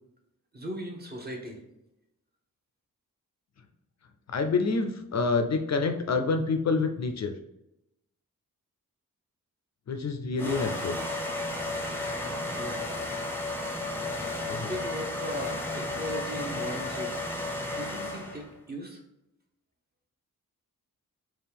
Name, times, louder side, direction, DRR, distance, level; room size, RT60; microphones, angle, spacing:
voice 1, 0.5-1.6 12.6-12.9 14.7-17.1 17.7-19.0, equal, 30° right, 1 dB, 0.9 m, -38 dB
voice 2, 4.3-7.3 9.9-11.0 14.5-14.7, left 4 dB, 50° left, 7 dB, 0.4 m, -27 dB
sound 1, 10.4-18.5, left 2 dB, 5° left, 0.7 m, -33 dB
4.3 x 2.3 x 3.4 m, 0.87 s
wide cardioid pair, 85°, 34 cm